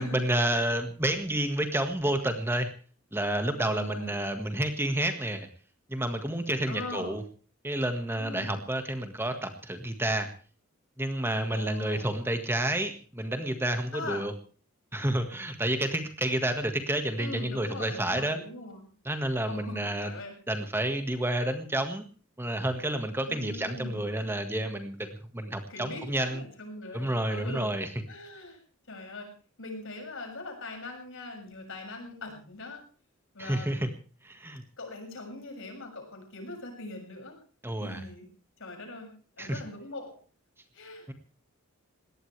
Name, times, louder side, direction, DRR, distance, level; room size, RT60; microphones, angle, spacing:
voice 1, 0.0-2.7 3.1-5.5 5.9-7.2 7.6-10.3 11.0-14.3 14.9-18.4 19.0-20.1 20.5-22.0 22.4-25.1 25.3-26.4 26.9-27.9 33.4-33.9 34.2-34.6 37.6-38.0 39.4-39.6 41.1-41.2, right 1 dB, 10° right, 7 dB, 1.7 m, -30 dB
voice 2, 3.6-4.2 6.7-7.2 8.2-8.6 11.5-12.2 13.9-14.3 17.2-18.9 19.5-20.3 23.3-24.1 25.7-27.8 28.1-28.6 28.9-29.3 29.6-32.8 33.3-33.9 34.8-37.4 37.8-38.2 38.6-39.1 39.4-40.2 40.7-41.1, left 2 dB, 65° left, 3 dB, 6.8 m, -41 dB
21.0 x 18.0 x 3.4 m, 0.40 s
head